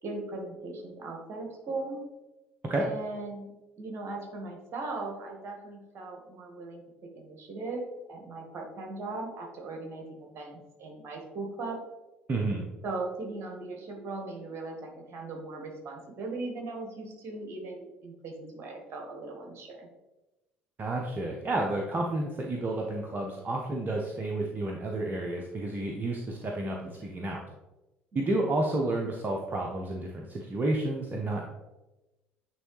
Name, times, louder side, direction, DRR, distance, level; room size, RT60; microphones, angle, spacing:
voice 1, 0.0-2.0 2.8-3.5 3.8-7.8 8.1-11.8 12.8-19.9 28.1-28.3, right 3 dB, 50° right, 1 dB, 1.5 m, -38 dB
voice 2, 12.3-12.6 20.8-27.4 28.1-31.4, right 2 dB, 30° right, 1 dB, 0.8 m, -30 dB
9.0 x 3.3 x 3.2 m, 1.0 s
figure-of-eight pair, 55°, 6 cm